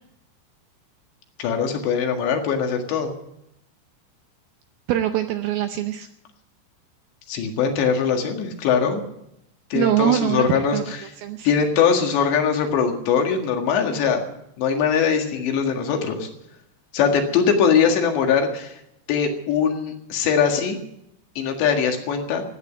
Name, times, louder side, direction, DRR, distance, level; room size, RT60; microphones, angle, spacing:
voice 1, 1.4-3.1 7.3-9.0 9.7-11.0 11.4-14.2 14.6-16.3 16.9-18.8 19.1-20.8 21.4-22.4, left 6 dB, 75° left, 4 dB, 4.0 m, -21 dB
voice 2, 4.9-6.1 9.7-10.5 10.7-11.5, right 11 dB, 80° right, 7 dB, 2.2 m, -23 dB
15.5 x 9.6 x 9.0 m, 0.80 s
omnidirectional pair, 5.2 m